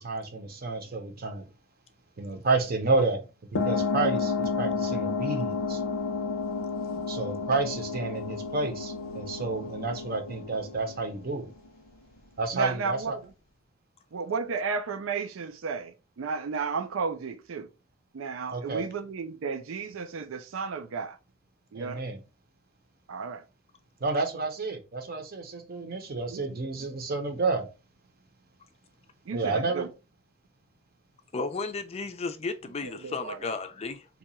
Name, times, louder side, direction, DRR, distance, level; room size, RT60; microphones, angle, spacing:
voice 1, 0.0-1.5 2.2-5.8 6.9-11.5 12.4-13.2 18.5-18.8 21.7-22.2 24.0-27.7 29.3-29.9, right 3 dB, 50° right, 0.7 m, -30 dB
sound 1, 3.6-11.7, left 4 dB, 90° left, 0.6 m, -31 dB
voice 2, 12.5-13.2 14.1-17.7 18.1-21.2 21.7-22.0 23.1-23.4 26.3-26.9 29.3-29.9 32.8-33.5, right 5 dB, 85° right, 0.4 m, -33 dB
voice 3, 31.3-34.1, left 4 dB, 30° left, 0.4 m, -34 dB
2.8 x 2.3 x 4.0 m
head